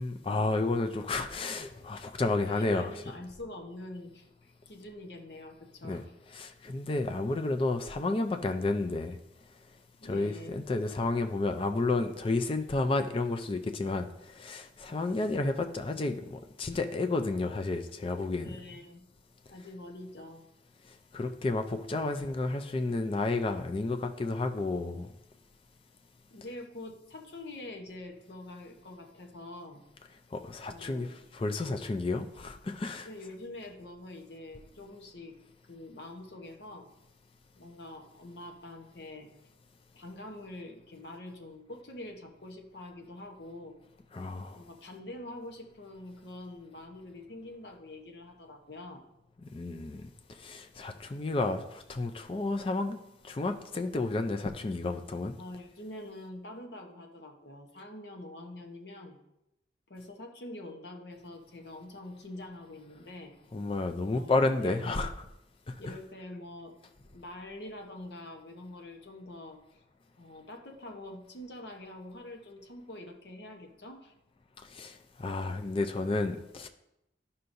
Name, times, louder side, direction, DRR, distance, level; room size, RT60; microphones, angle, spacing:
voice 1, 0.0-2.9 5.8-6.0 6.3-9.2 10.0-18.5 21.1-25.1 30.3-33.1 44.1-44.6 49.4-50.1 50.4-53.0 53.2-55.4 63.5-65.1 65.8-65.9 74.7-76.7, left 2 dB, 30° left, 0.4 m, -31 dB
voice 2, 2.4-6.1 10.0-10.6 18.4-19.0 19.5-20.4 25.0-25.1 26.3-29.8 30.7-31.1 33.0-35.3 35.7-36.9 37.5-39.3 39.9-43.8 44.5-49.0 55.4-59.2 59.9-63.3 64.1-65.1 65.8-66.7 67.1-69.6 70.2-74.1, left 1 dB, 65° left, 1.0 m, -45 dB
11.0 x 5.6 x 2.6 m
head